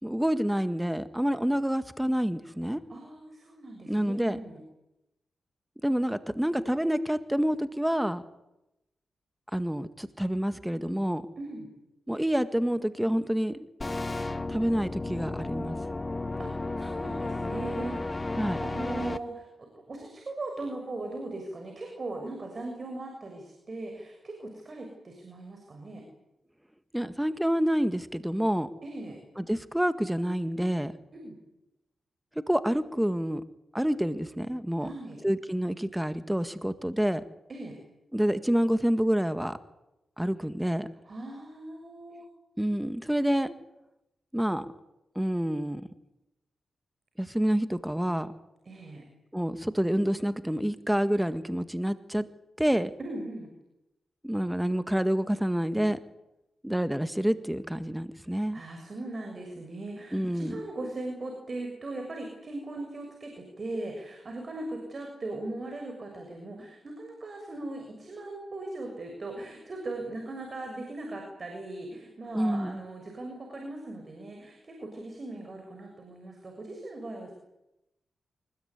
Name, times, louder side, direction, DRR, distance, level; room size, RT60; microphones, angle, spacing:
voice 1, 0.0-2.8 3.9-4.4 5.8-8.2 9.5-11.3 12.1-13.7 14.5-15.8 18.4-18.6 26.9-28.7 29.4-30.9 32.5-33.4 33.7-34.9 35.2-37.2 38.1-39.6 40.2-40.9 42.6-43.5 44.3-44.7 45.2-45.9 47.2-48.3 49.3-52.3 52.6-52.9 54.2-56.0 56.6-58.6 60.1-60.5 72.3-72.8, equal, 5° right, 11 dB, 1.8 m, -28 dB
voice 2, 2.9-4.6 11.4-11.7 16.4-26.0 28.8-29.2 31.1-31.4 34.8-35.2 37.5-37.8 41.1-42.3 48.6-49.0 53.0-53.5 58.3-77.3, right 2 dB, 45° right, 3 dB, 6.7 m, -39 dB
sound 1, 13.8-19.2, left 2 dB, 25° left, 1.5 m, -33 dB
24.5 x 21.0 x 9.7 m, 0.89 s
cardioid pair, 60°, 0 cm